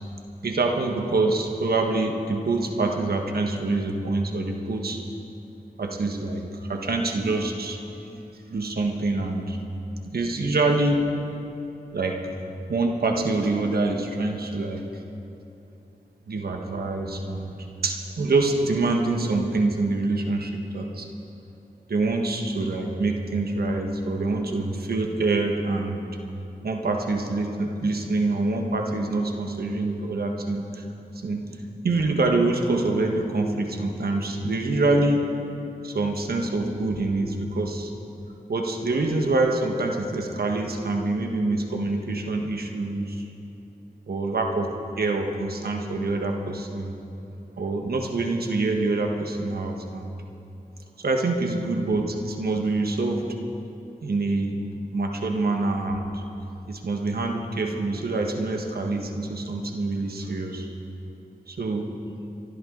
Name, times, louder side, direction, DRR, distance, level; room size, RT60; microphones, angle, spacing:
voice 1, 0.4-5.0 5.8-7.8 8.5-9.6 10.1-11.0 11.9-12.2 12.7-14.8 16.3-21.1 21.9-26.0 26.6-30.8 31.1-31.5 31.8-35.3 35.8-37.9 38.5-43.2 44.1-44.7 45.0-47.0 47.6-50.1 51.0-53.2 54.0-54.6 54.9-56.2 56.7-60.7 61.5-61.9, right 2 dB, 80° right, 2 dB, 1.5 m, -25 dB
25.5 x 12.0 x 4.0 m, 2.8 s
cardioid pair, 40°, 16 cm